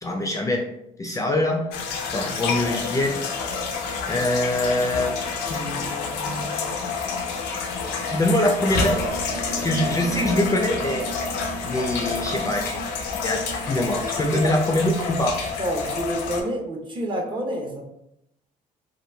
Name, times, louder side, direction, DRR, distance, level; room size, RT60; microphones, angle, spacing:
voice 1, 0.0-0.6 1.0-1.9 2.1-3.1 4.1-5.1 5.5-6.7 8.1-9.1 9.6-11.0 11.6-12.8 13.2-15.4, left 1 dB, 20° left, 1 dB, 0.4 m, -24 dB
sound 1, 1.7-16.4, left 4 dB, 85° left, 0.5 m, -28 dB
voice 2, 15.6-17.8, right 1 dB, 30° right, 0 dB, 0.8 m, -28 dB
2.9 x 2.3 x 2.2 m, 0.80 s
supercardioid pair, 70°, 17 cm